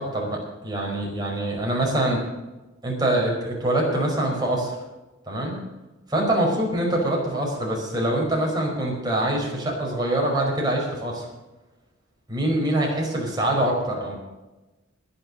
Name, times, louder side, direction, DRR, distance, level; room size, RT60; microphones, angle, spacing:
voice 1, 0.0-2.2 2.8-4.7 5.3-5.6 6.1-11.3 12.3-14.1, right 1 dB, 20° right, -2 dB, 5.1 m, -24 dB
20.0 x 7.1 x 6.5 m, 1.1 s
head